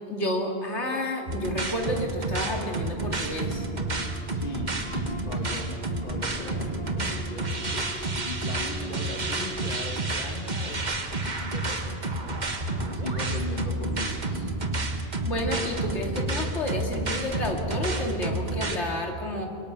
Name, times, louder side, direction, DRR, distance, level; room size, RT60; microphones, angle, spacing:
voice 1, 0.1-3.7 15.2-19.5, left 1 dB, 90° left, 1 dB, 2.9 m, -30 dB
sound 1, 1.3-18.8, right 2 dB, 40° right, 1.6 m, -30 dB
sound 2, 2.9-9.9, left 1 dB, 10° left, 1.1 m, -43 dB
voice 2, 4.3-7.9 8.2-12.5 12.9-14.5, left 2 dB, 50° left, 2 dB, 2.0 m, -39 dB
25.5 x 24.5 x 6.1 m, 2.5 s
omnidirectional pair, 1.1 m